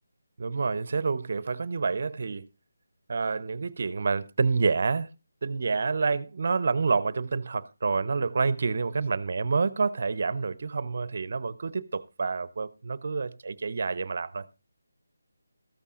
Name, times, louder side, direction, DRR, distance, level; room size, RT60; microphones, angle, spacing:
voice 1, 0.4-2.5 3.1-5.1 5.4-14.4, right 4 dB, 50° right, 0.7 m, -28 dB
14.0 x 13.5 x 2.5 m
figure-of-eight pair, 160°, 0 cm